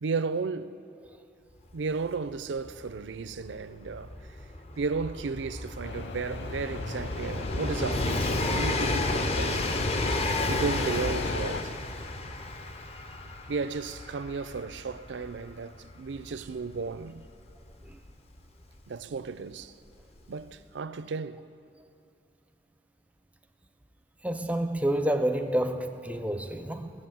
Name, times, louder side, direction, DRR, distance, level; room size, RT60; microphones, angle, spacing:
voice 1, 0.0-0.8 1.7-4.1 4.8-9.6 10.5-11.7 13.5-17.3 18.9-19.7 20.3-21.5, right 4 dB, 85° right, 0.5 m, -34 dB
Train, 1.7-1.8 2.0-18.6 19.6-19.7, left 2 dB, 35° left, 0.6 m, -32 dB
sound 1, 5.8-11.6, left 4 dB, 80° left, 0.6 m, -38 dB
voice 2, 24.2-26.9, right 1 dB, 10° right, 0.5 m, -29 dB
17.0 x 7.6 x 7.7 m
head